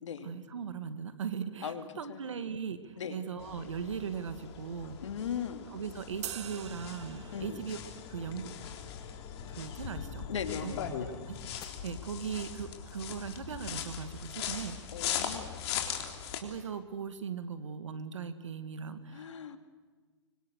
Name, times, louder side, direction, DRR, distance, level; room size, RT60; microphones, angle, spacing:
voice 1, 0.2-5.0 5.7-7.8 8.1-8.5 9.5-10.3 10.6-10.7 11.3-14.8 16.4-19.3, right 6 dB, 85° right, 10 dB, 2.3 m, -39 dB
voice 2, 1.6-2.2 3.0-3.2 5.0-5.7 7.3-7.6 10.3-10.8 14.9-15.5 19.1-19.6, left 7 dB, 80° left, 8 dB, 2.5 m, -38 dB
sound 1, 3.4-16.4, left 8 dB, 60° left, 3.8 m, -40 dB
sound 2, 6.2-7.8, right 11 dB, 65° right, 1.7 m, -43 dB
sound 3, 6.6-11.6, left 9 dB, 25° left, 1.5 m, -53 dB
26.0 x 24.5 x 6.6 m, 1.5 s
hypercardioid pair, 125°, 15 cm